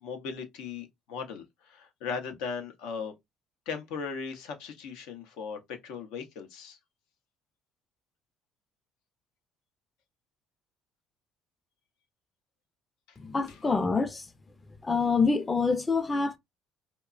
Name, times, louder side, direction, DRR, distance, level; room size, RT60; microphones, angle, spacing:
voice 1, 0.0-3.1 3.7-6.8, left 5 dB, 85° left, 0.7 m, -38 dB
voice 2, 13.2-14.3 14.8-16.4, left 4 dB, 20° left, 0.5 m, -26 dB
2.8 x 2.2 x 2.3 m
cardioid pair, 95°, 0 cm